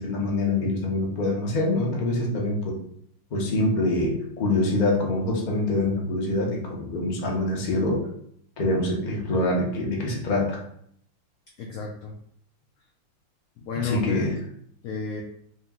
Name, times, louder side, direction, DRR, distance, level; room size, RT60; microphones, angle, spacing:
voice 1, 0.0-2.8 3.3-8.1 8.6-10.6 13.7-14.4, left 2 dB, 45° left, -2 dB, 0.5 m, -25 dB
voice 2, 11.6-12.1 13.6-14.2 14.8-15.2, left 5 dB, 80° left, 0 dB, 0.7 m, -32 dB
3.3 x 3.0 x 3.6 m, 0.66 s
omnidirectional pair, 2.1 m